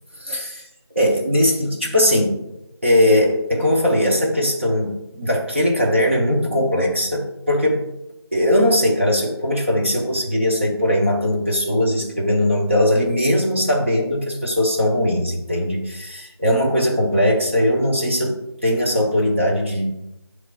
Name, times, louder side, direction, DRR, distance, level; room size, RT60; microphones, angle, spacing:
voice 1, 0.2-0.7 0.9-2.4 2.8-7.9 8.3-19.9, left 1 dB, 25° right, -2 dB, 0.7 m, -19 dB
6.5 x 3.2 x 5.2 m, 0.88 s
figure-of-eight pair, 170°, 14 cm